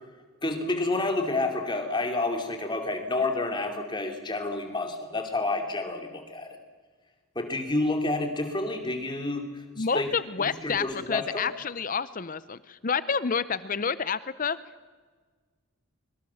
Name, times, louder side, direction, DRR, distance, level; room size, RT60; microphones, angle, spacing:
voice 1, 0.4-6.6 7.3-10.1 10.6-11.4, left 2 dB, 20° left, 5 dB, 2.9 m, -29 dB
voice 2, 9.8-14.6, left 6 dB, 35° left, 16 dB, 0.6 m, -29 dB
25.0 x 23.0 x 7.1 m, 1.5 s
head